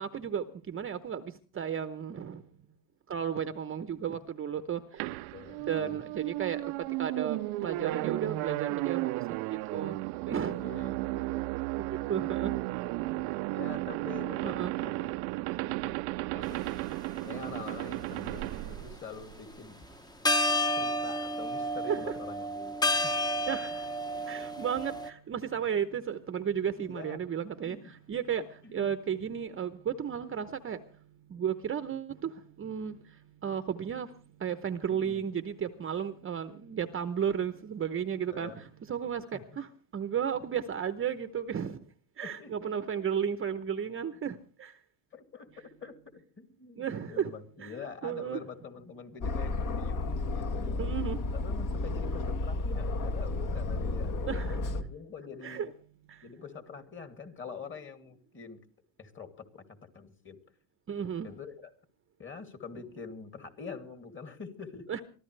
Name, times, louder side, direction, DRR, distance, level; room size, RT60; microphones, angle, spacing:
voice 1, 0.0-2.4 3.1-5.0 5.7-6.7 7.0-9.1 9.5-10.0 10.3-10.6 11.8-13.3 14.4-14.7 21.9-22.2 23.5-23.9 24.3-30.8 31.3-32.3 32.6-33.0 33.4-34.1 34.4-39.7 39.9-41.8 42.2-44.7 46.8-47.3 47.6-47.7 48.0-48.4 50.8-51.2 54.3-54.6 55.4-55.7 60.9-61.3 64.9-65.0, right 8 dB, 30° right, 0.9 m, -34 dB
sound 1, 5.0-19.5, right 21 dB, 75° right, 0.7 m, -34 dB
voice 2, 5.3-6.0 10.6-11.5 13.5-15.1 15.6-16.0 16.3-16.7 17.2-19.8 20.7-23.3 26.7-27.2 27.6-27.9 28.6-28.9 34.9-35.2 38.3-38.6 39.3-39.4 42.2-42.7 45.1-50.9 51.3-54.2 54.7-55.7 56.2-58.6 59.0-60.4 61.2-61.7 62.2-64.9, left 5 dB, 25° left, 2.7 m, -45 dB
sound 2, 16.5-16.7 17.4-18.4 19.8-19.9 20.2-25.1, left 1 dB, 10° left, 0.9 m, -30 dB
Aircraft, 49.2-54.8, left 2 dB, 40° left, 1.7 m, -32 dB
23.5 x 15.0 x 3.3 m
supercardioid pair, 115°, 46 cm